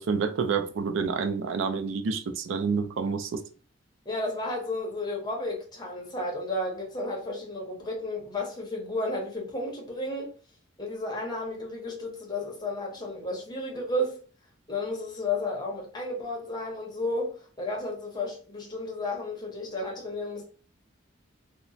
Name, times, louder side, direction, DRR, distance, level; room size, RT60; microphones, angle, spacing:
voice 1, 0.0-3.4, right 5 dB, 75° right, 0.4 m, -28 dB
voice 2, 4.0-10.3 10.8-14.2 14.7-20.4, left 2 dB, 20° left, 0.8 m, -32 dB
2.9 x 2.1 x 2.6 m
head